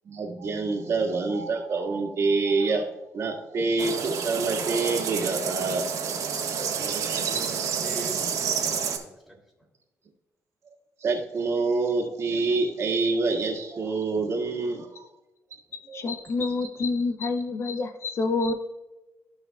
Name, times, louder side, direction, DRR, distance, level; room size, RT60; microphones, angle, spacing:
voice 1, 0.1-2.9 3.1-5.9 6.8-7.1 11.0-14.9 15.9-16.0, right 3 dB, 55° right, -1 dB, 1.8 m, -26 dB
sound 1, 3.8-9.0, right 6 dB, 75° right, 1.5 m, -29 dB
voice 2, 6.5-9.3, equal, ahead, -1 dB, 3.1 m, -43 dB
voice 3, 15.7-18.5, left 3 dB, 50° left, 8 dB, 0.7 m, -28 dB
15.0 x 5.7 x 2.3 m, 1.1 s
cardioid pair, 120°, 6 cm